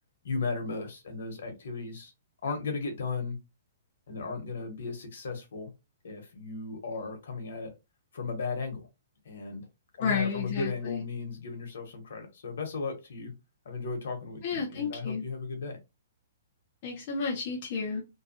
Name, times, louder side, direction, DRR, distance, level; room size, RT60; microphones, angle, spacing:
voice 1, 0.2-2.1 2.4-3.4 4.1-5.7 6.0-7.7 8.1-8.8 9.2-9.6 10.0-13.3 13.6-15.8, left 4 dB, 70° left, 1.0 m, -35 dB
voice 2, 10.0-11.0 14.4-15.3 16.8-18.0, left 5 dB, 30° left, 0.5 m, -31 dB
2.7 x 2.2 x 2.7 m
hypercardioid pair, 175°, 0 cm